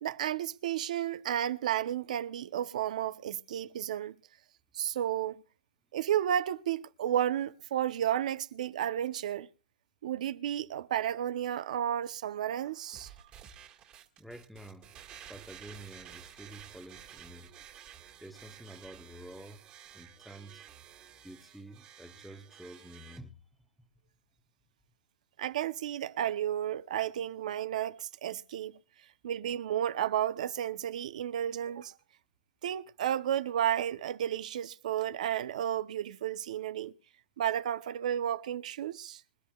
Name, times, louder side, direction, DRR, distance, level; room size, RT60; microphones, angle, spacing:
voice 1, 0.0-4.1 4.7-5.4 5.9-9.5 10.0-13.1 25.4-28.8 29.2-31.9 32.6-36.9 37.4-39.2, right 10 dB, 60° right, 0.8 m, -32 dB
sound 1, 12.9-23.2, right 9 dB, 25° right, 1.8 m, -52 dB
voice 2, 14.2-14.9 15.3-17.6 18.2-19.7 19.9-20.6 21.2-23.4, right 1 dB, ahead, 0.9 m, -49 dB
26.0 x 11.0 x 2.3 m
hypercardioid pair, 155°, 4 cm